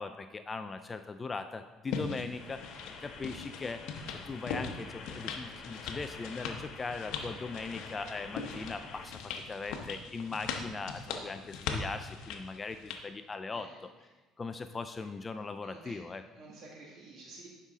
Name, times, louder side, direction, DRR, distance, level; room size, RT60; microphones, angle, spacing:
voice 1, 0.0-2.6 3.0-3.8 4.1-9.2 9.5-13.7 14.4-16.2, left 4 dB, 25° left, 9 dB, 0.3 m, -39 dB
sound 1, 1.9-13.0, left 5 dB, 80° left, 0.9 m, -41 dB
sound 2, 2.4-9.1, left 4 dB, 55° left, 1.5 m, -48 dB
voice 2, 13.5-13.8 15.0-15.1 15.6-16.0 16.3-17.5, right 3 dB, 60° right, -3 dB, 1.8 m, -51 dB
10.5 x 5.5 x 3.7 m, 1.2 s
cardioid pair, 105°, 0 cm